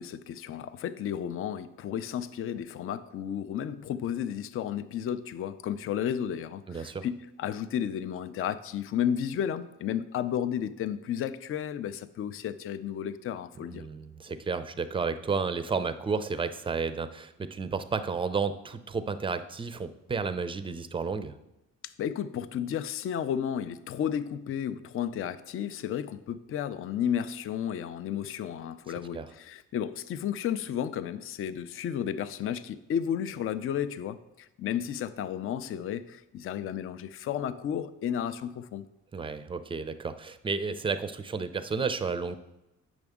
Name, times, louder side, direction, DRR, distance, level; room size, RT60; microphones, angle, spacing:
voice 1, 0.0-13.8 21.8-38.9, left 9 dB, 45° left, 13 dB, 0.4 m, -33 dB
voice 2, 6.7-7.1 13.7-21.4 29.1-29.3 39.1-42.4, right 5 dB, 15° right, 12 dB, 0.5 m, -32 dB
8.0 x 6.0 x 3.6 m, 0.92 s
cardioid pair, 90°, 30 cm